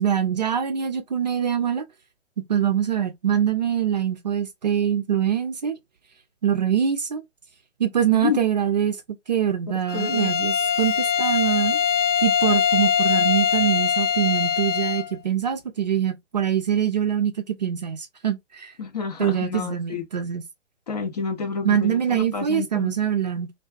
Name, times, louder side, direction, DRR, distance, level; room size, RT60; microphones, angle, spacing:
voice 1, 0.0-1.8 2.5-5.8 6.4-7.2 7.8-9.0 9.3-11.8 12.2-18.7 19.2-20.4 21.6-23.5, right 9 dB, 40° right, 0.4 m, -24 dB
voice 2, 8.1-8.5 9.9-10.3 18.8-20.1 20.9-23.0, left 5 dB, 35° left, 0.5 m, -29 dB
Bowed string instrument, 9.9-15.1, left 8 dB, 90° left, 0.7 m, -22 dB
2.3 x 2.3 x 2.3 m
figure-of-eight pair, 130°, 36 cm